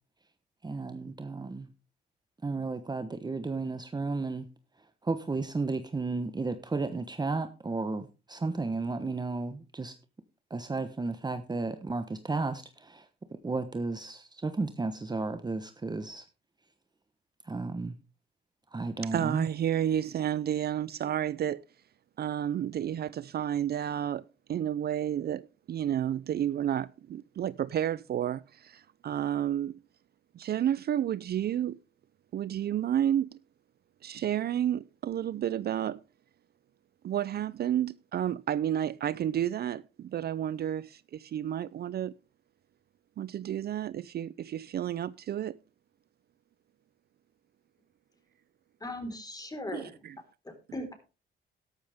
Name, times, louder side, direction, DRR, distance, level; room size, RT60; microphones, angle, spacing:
voice 1, 0.6-1.7 2.4-4.5 5.0-9.9 10.5-13.1 13.4-16.2 17.4-17.9 18.7-19.5, right 3 dB, 20° right, 1.1 m, -33 dB
voice 2, 19.0-21.6 22.2-24.2 24.5-29.8 30.3-31.8 32.3-33.4 34.0-36.0 37.0-42.1 43.2-45.6 49.7-50.2, right 10 dB, 55° right, 0.5 m, -31 dB
voice 3, 48.8-50.0 50.4-50.9, left 1 dB, 20° left, 4.5 m, -38 dB
13.0 x 12.0 x 3.5 m
cardioid pair, 90°, 20 cm